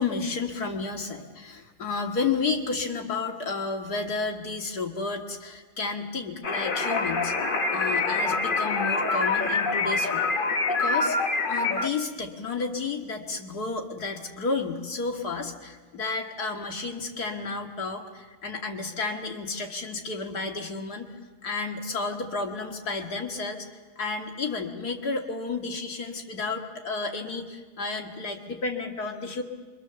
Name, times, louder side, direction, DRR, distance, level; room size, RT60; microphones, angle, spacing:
voice 1, 0.0-7.3 7.7-10.2 10.7-11.2 11.5-21.1 21.4-23.7 24.0-29.4, left 4 dB, 90° left, 3 dB, 2.6 m, -31 dB
sound 1, 6.4-11.9, left 3 dB, 35° left, 1.2 m, -25 dB
27.0 x 24.5 x 7.0 m, 1.4 s
omnidirectional pair, 1.6 m